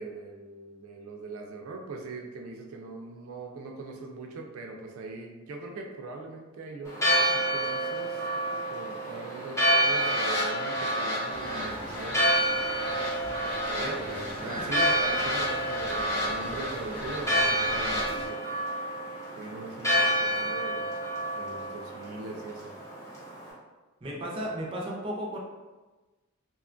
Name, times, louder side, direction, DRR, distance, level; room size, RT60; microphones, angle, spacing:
voice 1, 0.0-8.2 8.7-12.2 13.7-18.5 19.4-22.8, right 3 dB, 90° right, 2 dB, 0.4 m, -41 dB
Church bell, 6.9-23.5, right 1 dB, 15° left, 0.7 m, -29 dB
sound 1, 9.6-18.1, left 1 dB, 55° left, 1.0 m, -35 dB
sound 2, 11.3-18.3, equal, 80° left, 1.3 m, -43 dB
voice 2, 24.0-25.4, equal, 25° right, -3 dB, 0.5 m, -34 dB
2.8 x 2.2 x 2.4 m, 1.2 s
head